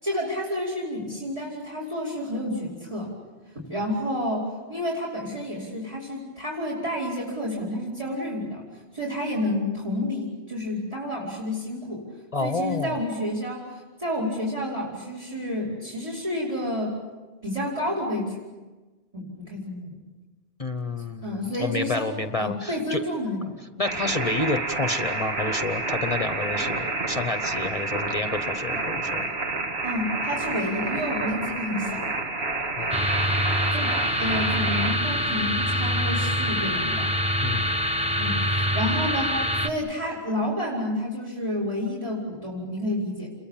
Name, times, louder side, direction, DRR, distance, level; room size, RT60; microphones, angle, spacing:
voice 1, 0.0-3.1 3.5-8.6 8.9-12.0 12.4-16.9 17.4-18.4 19.1-20.0 21.2-23.6 29.8-32.1 32.8-32.9 33.7-33.9 34.2-37.1 37.5-37.6 38.2-43.3, left 1 dB, 35° right, -3 dB, 5.2 m, -30 dB
voice 2, 12.3-12.9 20.6-23.0 23.8-29.3 32.6-32.9 37.4-37.8, left 2 dB, 35° left, 8 dB, 1.0 m, -29 dB
sound 1, 23.8-35.0, right 3 dB, 75° right, 1.9 m, -29 dB
sound 2, 32.9-39.7, equal, 5° right, 1.2 m, -25 dB
29.5 x 22.5 x 7.4 m, 1.2 s
omnidirectional pair, 1.1 m